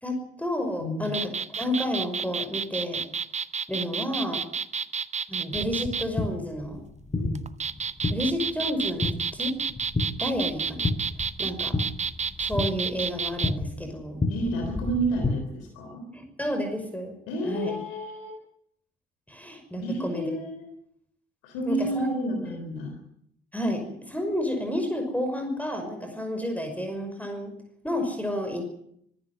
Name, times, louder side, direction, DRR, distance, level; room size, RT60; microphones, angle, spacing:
voice 1, 0.0-3.0 3.7-4.4 5.3-6.8 8.1-9.6 10.2-10.9 11.4-11.8 12.4-14.2 16.1-17.1 17.4-17.8 19.3-20.3 21.6-22.1 22.5-22.6 23.5-27.5 27.8-28.6, equal, 5° left, 6 dB, 5.8 m, -30 dB
voice 2, 0.8-1.1 7.2-7.4 14.3-16.1 17.3-18.4 19.8-20.7 21.4-23.0, right 1 dB, 65° left, 4 dB, 3.6 m, -30 dB
sound 1, 1.0-6.1 7.3-13.5, right 6 dB, 25° right, 0.8 m, -30 dB
sound 2, 5.5-15.3, left 2 dB, 25° left, 5.9 m, -32 dB
24.5 x 13.5 x 9.3 m, 0.71 s
figure-of-eight pair, 45°, 29 cm